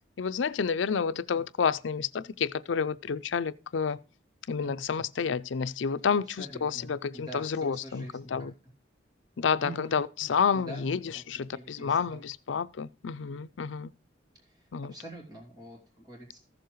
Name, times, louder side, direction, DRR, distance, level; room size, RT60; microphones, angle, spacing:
voice 1, 0.2-4.0 4.5-8.5 9.4-13.9 14.7-14.9, left 6 dB, 90° left, 0.5 m, -30 dB
voice 2, 6.3-8.3 9.6-10.0 10.5-10.9 11.1-11.2 11.5-12.2 14.4-16.4, right 1 dB, 20° right, 2.8 m, -45 dB
14.5 x 7.0 x 3.1 m
head